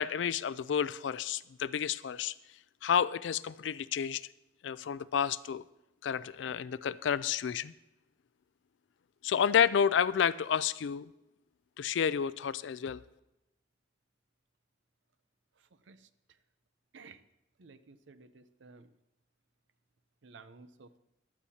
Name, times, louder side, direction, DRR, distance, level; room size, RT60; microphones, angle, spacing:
voice 1, 0.0-2.3 2.8-4.2 4.6-5.6 6.0-7.7 9.2-11.1 11.8-13.0, left 8 dB, 75° left, 0.4 m, -30 dB
voice 2, 17.6-18.9 20.2-21.0, right 4 dB, 80° right, 0.6 m, -54 dB
15.5 x 11.5 x 2.8 m
head